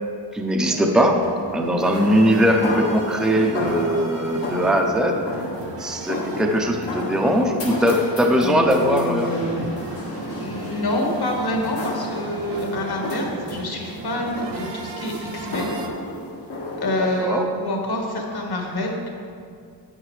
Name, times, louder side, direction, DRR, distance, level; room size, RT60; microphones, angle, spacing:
voice 1, 0.3-5.4 5.8-9.4 17.2-17.5, equal, ahead, 2 dB, 0.6 m, -20 dB
sound 1, 0.7-15.9, right 3 dB, 75° right, 1.0 m, -37 dB
sound 2, 1.8-17.2, left 1 dB, 75° left, 1.8 m, -33 dB
voice 2, 8.4-9.7 10.4-15.7 16.8-19.1, left 1 dB, 60° left, 0 dB, 1.6 m, -26 dB
9.8 x 8.7 x 3.2 m, 2.4 s
wide cardioid pair, 115°, 44 cm